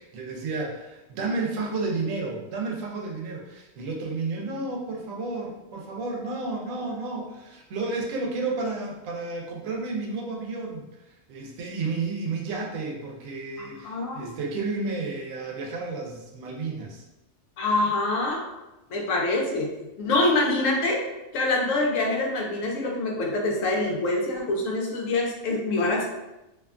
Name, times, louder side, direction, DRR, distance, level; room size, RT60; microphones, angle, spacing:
voice 1, 0.0-10.9 11.3-17.1, right 3 dB, 85° right, 0 dB, 1.0 m, -31 dB
voice 2, 13.6-14.3 17.6-18.5 18.9-19.7 20.0-21.0 21.3-26.0, left 2 dB, 80° left, 0 dB, 1.0 m, -25 dB
2.7 x 2.2 x 2.4 m, 0.97 s
omnidirectional pair, 1.3 m